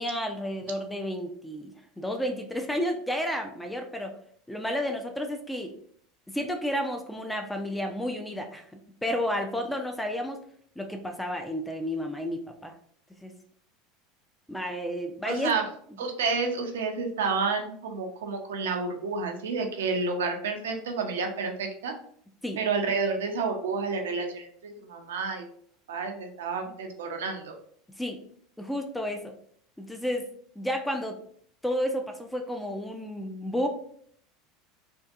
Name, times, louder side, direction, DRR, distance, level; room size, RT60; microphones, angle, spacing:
voice 1, 0.0-4.1 4.5-5.7 6.3-8.7 9.0-10.4 10.8-12.7 13.2-13.4 14.5-15.6 22.4-22.6 28.0-28.2 28.6-29.3 29.8-30.3 30.6-31.2 31.6-33.7, equal, 5° left, 4 dB, 0.4 m, -31 dB
voice 2, 15.2-15.7 16.0-21.9 22.6-25.5 25.9-27.6, right 4 dB, 80° right, 4 dB, 0.4 m, -30 dB
2.6 x 2.4 x 2.3 m, 0.62 s
hypercardioid pair, 85°, 0 cm